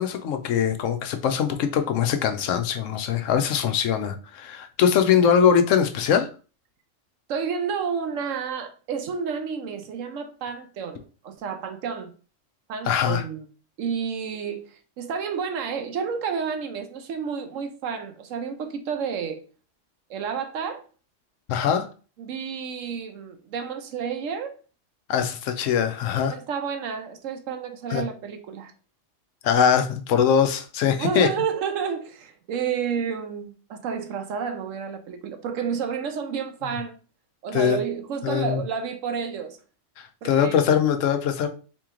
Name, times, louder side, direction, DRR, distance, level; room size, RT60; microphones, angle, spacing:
voice 1, 0.0-6.3 12.9-13.2 21.5-21.9 25.1-26.4 27.9-28.0 29.4-31.3 37.5-37.8 38.2-38.6 40.0-41.5, left 8 dB, 80° left, 1.0 m, -22 dB
voice 2, 7.3-12.1 12.7-13.5 13.8-19.4 20.1-20.9 22.2-24.5 26.3-28.7 31.0-37.0 37.4-39.6 40.2-40.5, right 6 dB, 85° right, 1.1 m, -30 dB
4.1 x 3.0 x 3.7 m
omnidirectional pair, 1.3 m